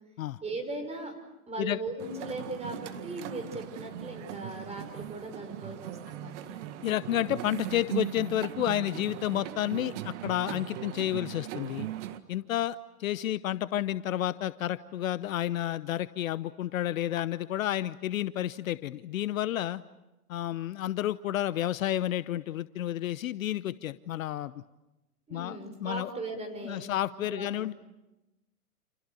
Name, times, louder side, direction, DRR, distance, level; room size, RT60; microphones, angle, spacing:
voice 1, 0.4-1.1 1.5-6.6 25.3-27.7, right 2 dB, 15° right, 5 dB, 6.0 m, -38 dB
sound 1, 2.0-12.2, right 12 dB, 50° right, 1.9 m, -39 dB
voice 2, 6.8-11.9 12.3-19.8 20.3-24.5 25.3-26.1 26.6-27.7, left 12 dB, 60° left, 16 dB, 0.9 m, -31 dB
29.0 x 28.5 x 6.8 m, 0.99 s
hypercardioid pair, 115°, 46 cm